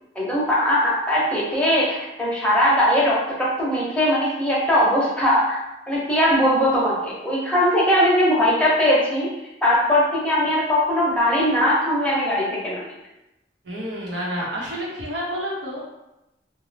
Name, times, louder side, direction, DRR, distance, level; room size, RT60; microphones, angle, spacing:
voice 1, 0.2-5.6 5.9-9.3 9.6-12.9, equal, 5° left, -6 dB, 0.7 m, -20 dB
voice 2, 13.6-15.9, equal, 85° right, -5 dB, 0.9 m, -29 dB
2.7 x 2.2 x 3.2 m, 0.93 s
head